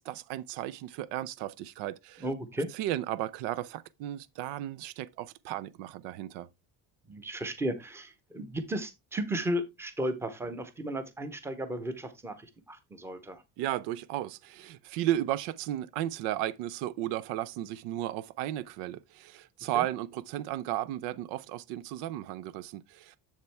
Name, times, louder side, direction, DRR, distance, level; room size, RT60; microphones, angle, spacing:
voice 1, 0.0-2.3 2.7-6.5 13.6-23.2, right 13 dB, 85° right, 0.7 m, -34 dB
voice 2, 2.2-2.7 7.1-13.4 19.7-19.9, right 1 dB, 5° right, 0.8 m, -34 dB
7.4 x 7.4 x 3.3 m
cardioid pair, 175°, 41 cm